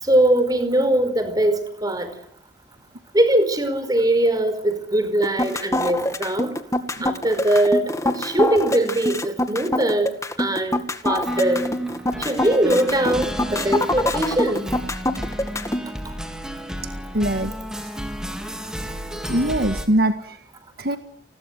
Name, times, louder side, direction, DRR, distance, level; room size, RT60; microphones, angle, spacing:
voice 1, 0.0-2.1 3.1-6.5 7.0-11.7 12.2-14.7, right 1 dB, 20° right, 10 dB, 4.9 m, -21 dB
sound 1, 5.2-15.8, left 1 dB, 15° left, 2.0 m, -24 dB
sound 2, 11.2-19.9, equal, 5° right, 3.8 m, -32 dB
voice 2, 17.1-17.5 19.3-20.4 20.8-21.0, right 1 dB, 60° right, 8 dB, 1.8 m, -22 dB
30.0 x 21.0 x 9.5 m, 0.64 s
head